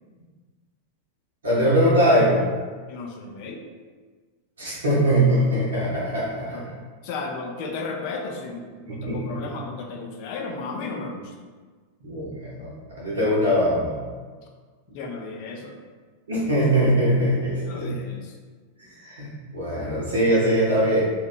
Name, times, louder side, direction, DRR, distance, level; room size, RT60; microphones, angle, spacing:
voice 1, 1.4-2.4 4.6-6.6 8.9-9.5 12.0-12.7 13.0-14.0 16.3-17.9 19.0-21.0, equal, 65° right, -7 dB, 0.6 m, -22 dB
voice 2, 2.8-3.6 6.3-6.7 7.0-11.3 14.9-15.7 17.6-18.3, left 3 dB, 45° left, 1 dB, 0.3 m, -34 dB
2.8 x 2.0 x 2.3 m, 1.5 s
figure-of-eight pair, 90°, 0 cm